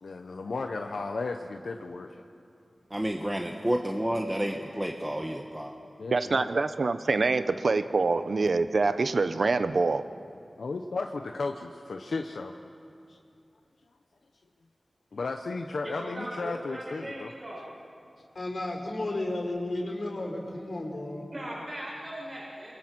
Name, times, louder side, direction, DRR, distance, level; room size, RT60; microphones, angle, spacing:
voice 1, 0.0-2.2 6.0-6.5 10.6-12.5 13.1-13.2 15.1-17.3, left 3 dB, 90° left, 4 dB, 0.9 m, -34 dB
voice 2, 2.9-5.7, right 1 dB, 15° right, 2 dB, 1.2 m, -30 dB
voice 3, 6.1-10.0, right 3 dB, 70° right, 11 dB, 0.8 m, -25 dB
voice 4, 15.8-17.6 21.3-22.7, right 1 dB, 40° right, -4 dB, 6.7 m, -39 dB
voice 5, 18.3-21.2, left 2 dB, 55° left, 1 dB, 4.7 m, -33 dB
28.0 x 23.0 x 6.2 m, 2.5 s
wide cardioid pair, 90°, 0 cm